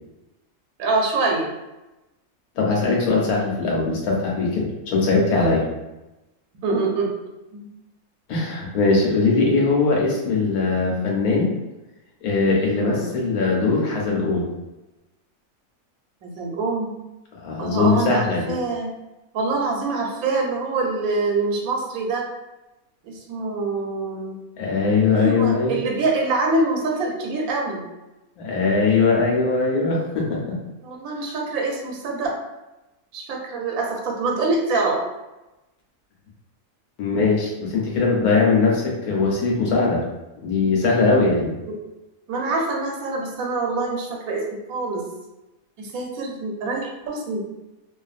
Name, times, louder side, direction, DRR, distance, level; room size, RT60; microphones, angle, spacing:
voice 1, 0.8-1.5 5.3-5.6 6.6-7.1 7.5-7.7 12.8-13.1 16.2-16.9 17.6-18.9 19.3-22.3 23.0-24.4 25.1-27.8 30.8-32.3 33.1-35.0 42.3-44.4 44.7-45.0 45.8-47.4, right 3 dB, 85° right, 0 dB, 1.1 m, -25 dB
voice 2, 2.6-5.7 8.3-11.5 12.2-14.5 17.3-18.6 24.6-25.8 28.4-30.6 31.2-31.3 37.0-40.0 40.4-41.5, left 4 dB, 85° left, -2 dB, 1.2 m, -21 dB
2.6 x 2.4 x 2.4 m, 1.0 s
omnidirectional pair, 1.5 m